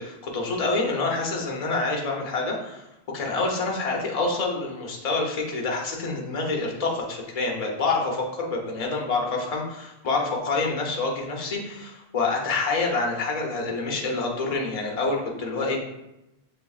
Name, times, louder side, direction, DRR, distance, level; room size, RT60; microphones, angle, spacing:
voice 1, 0.0-2.8 3.1-15.8, left 3 dB, 40° left, 0 dB, 0.8 m, -27 dB
5.5 x 3.4 x 2.4 m, 0.92 s
omnidirectional pair, 1.1 m